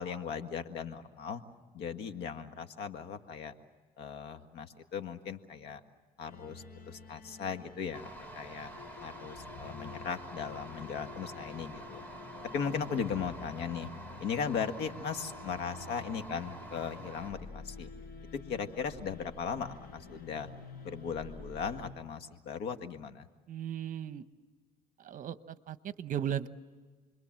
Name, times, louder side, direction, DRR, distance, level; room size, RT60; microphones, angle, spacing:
voice 1, 0.0-1.4 1.7-3.5 4.0-5.8 6.2-8.7 9.0-12.0 12.5-13.9 14.2-17.9 18.5-20.5 20.8-23.3, left 6 dB, 80° left, 8 dB, 1.8 m, -37 dB
sound 1, 6.3-21.9, left 5 dB, 60° left, 7.3 m, -50 dB
sound 2, 7.9-17.3, right 1 dB, 10° left, 5.3 m, -47 dB
voice 2, 23.5-24.3 25.0-26.5, right 10 dB, 50° right, 12 dB, 1.1 m, -36 dB
29.5 x 22.0 x 7.6 m, 1.4 s
cardioid pair, 110°, 17 cm